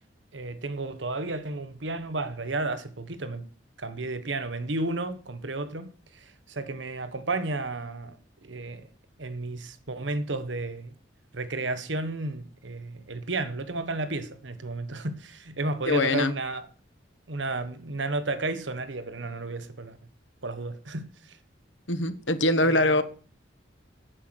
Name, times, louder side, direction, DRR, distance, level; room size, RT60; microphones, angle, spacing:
voice 1, 0.3-3.5 3.8-8.2 8.4-8.9 9.2-10.9 11.3-16.7 17.3-20.0 20.4-21.4 22.6-23.0, right 2 dB, 80° right, 1.3 m, -32 dB
voice 2, 15.8-16.3 21.9-23.0, left 2 dB, 85° left, 1.2 m, -23 dB
9.5 x 7.1 x 7.7 m
head